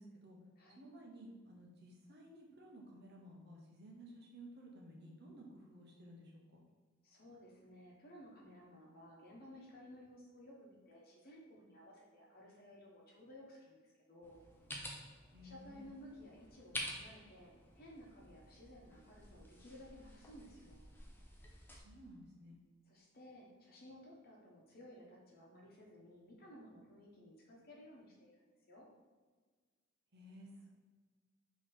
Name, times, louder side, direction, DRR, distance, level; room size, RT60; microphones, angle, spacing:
voice 1, 0.0-0.4 0.7-6.6 15.3-15.9 21.7-22.6 30.1-30.7, right 1 dB, 55° right, -1 dB, 0.8 m, -55 dB
voice 2, 7.0-14.4 14.7-14.9 15.4-20.8 22.9-28.9, left 1 dB, 50° left, -3 dB, 1.0 m, -57 dB
sound 1, 14.2-21.8, left 1 dB, 10° left, 0.5 m, -50 dB
3.8 x 2.9 x 4.2 m, 1.4 s
head